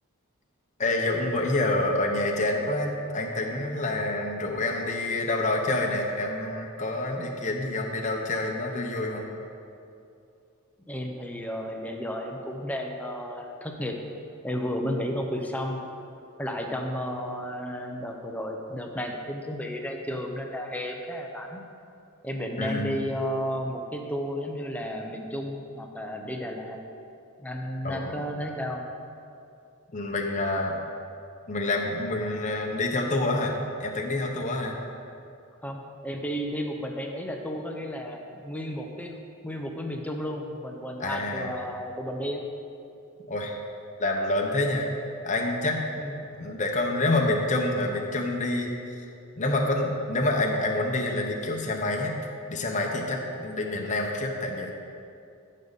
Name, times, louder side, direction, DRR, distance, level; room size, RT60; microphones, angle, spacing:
voice 1, 0.8-9.2 22.6-23.0 27.8-28.2 29.9-30.8 31.5-34.8 41.0-41.5 43.3-43.6 44.0-44.9 45.2-45.8 46.3-49.0 49.3-52.2 52.5-54.7, left 2 dB, 35° left, 1 dB, 0.9 m, -27 dB
voice 2, 10.9-14.0 14.4-15.8 16.4-21.6 22.2-26.8 27.4-28.8 35.6-39.1 39.4-42.4 46.0-46.3, equal, 5° left, 2 dB, 0.7 m, -33 dB
14.5 x 6.5 x 4.0 m, 2.6 s
head